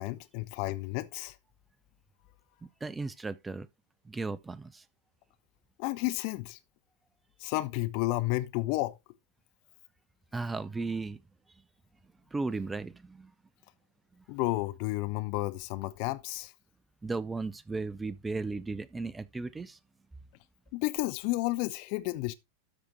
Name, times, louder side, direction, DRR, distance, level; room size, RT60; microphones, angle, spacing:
voice 1, 0.0-1.4 5.8-6.6 7.4-9.0 14.3-16.5 20.7-22.3, left 19 dB, 45° left, 0.6 m, -31 dB
voice 2, 2.8-3.7 4.0-4.8 10.3-11.2 12.3-13.3 14.1-14.2 17.0-19.8, right 3 dB, 10° right, 0.6 m, -35 dB
13.0 x 5.0 x 3.1 m
figure-of-eight pair, 90°, 0 cm